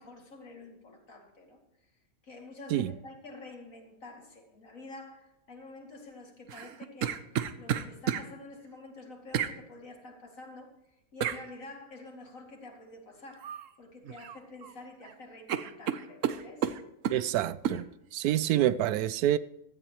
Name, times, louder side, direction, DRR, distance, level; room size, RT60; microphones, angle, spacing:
voice 1, 0.0-1.9 2.2-7.2 7.6-10.7 11.1-13.5 13.8-16.7, left 2 dB, 60° left, 2.8 m, -48 dB
sound 1, 6.5-8.3 9.3-9.6 11.2-11.4 13.4-13.7 14.0-14.7 15.0-15.1 15.5-17.2 17.6-17.8, right 9 dB, 65° right, 1.0 m, -31 dB
voice 2, 17.1-17.8 18.1-19.4, right 12 dB, 90° right, 1.1 m, -27 dB
16.0 x 13.5 x 3.0 m
omnidirectional pair, 1.6 m